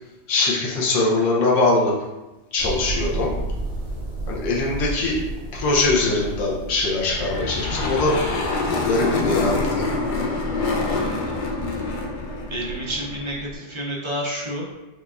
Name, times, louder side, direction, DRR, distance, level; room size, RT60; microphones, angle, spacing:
voice 1, 0.3-1.9 2.5-3.4 4.3-5.2 5.5-8.1 8.8-9.9, left 2 dB, 80° left, -4 dB, 1.1 m, -22 dB
sound 1, 2.6-13.6, right 2 dB, 80° right, 1.7 m, -33 dB
sound 2, 7.0-13.4, left 3 dB, 60° left, 0.5 m, -26 dB
voice 2, 10.8-11.4 12.5-14.7, equal, 35° right, -3 dB, 0.5 m, -30 dB
4.9 x 2.4 x 2.3 m, 1.1 s
omnidirectional pair, 1.3 m